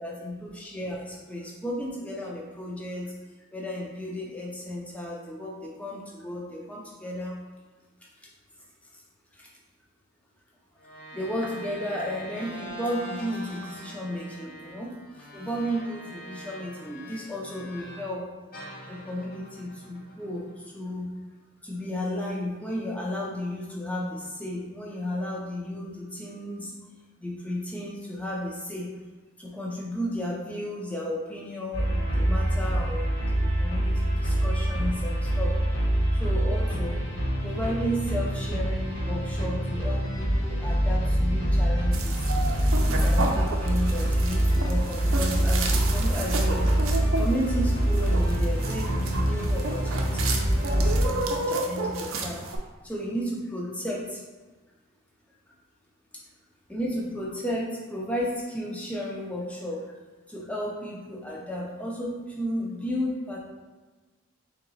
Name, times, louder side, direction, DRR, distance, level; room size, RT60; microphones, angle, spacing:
voice 1, 0.0-3.1 3.5-7.4 8.0-8.3 8.9-9.0 9.3-9.5 11.1-18.2 18.9-21.1 21.6-26.7 27.2-28.9 29.4-35.5 36.1-37.0 37.4-42.2 42.8-46.7 47.2-52.4 52.8-54.2 56.1-56.2 56.7-60.0 60.3-63.4, equal, 5° left, -3 dB, 0.6 m, -33 dB
sound 1, 10.8-18.2 18.5-20.9, equal, 45° left, 0.6 m, -43 dB
sound 2, 31.7-51.0, right 1 dB, 70° left, 1.4 m, -25 dB
sound 3, 41.9-52.6, right 2 dB, 80° right, 0.6 m, -32 dB
3.7 x 2.9 x 4.0 m, 1.3 s
head